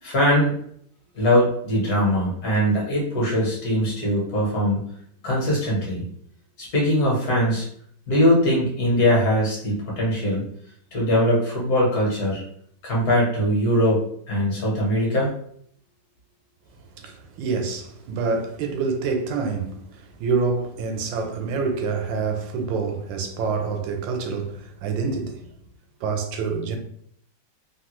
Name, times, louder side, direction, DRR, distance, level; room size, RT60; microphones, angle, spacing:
voice 1, 0.0-0.5 1.1-4.8 5.2-6.0 6.6-7.7 8.1-10.4 10.9-12.4 12.8-15.3, equal, 60° left, 1.5 m, -21 dB
voice 2, 17.0-25.5 26.0-26.8, right 4 dB, 90° right, 1.3 m, -27 dB
3.4 x 2.1 x 3.0 m
omnidirectional pair, 2.0 m